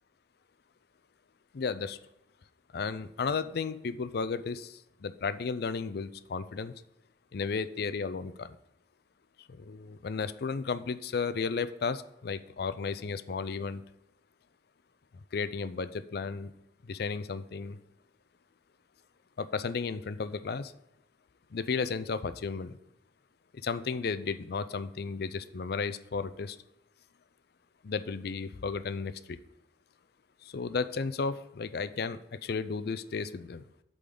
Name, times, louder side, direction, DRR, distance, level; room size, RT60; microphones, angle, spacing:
voice 1, 1.5-2.0 2.7-6.7 7.3-8.6 9.6-13.8 15.3-16.5 16.8-17.8 19.4-20.7 21.5-22.8 23.5-26.6 27.8-29.4 30.4-33.6, left 5 dB, 60° left, 13 dB, 0.5 m, -34 dB
8.3 x 3.9 x 6.9 m, 0.84 s
head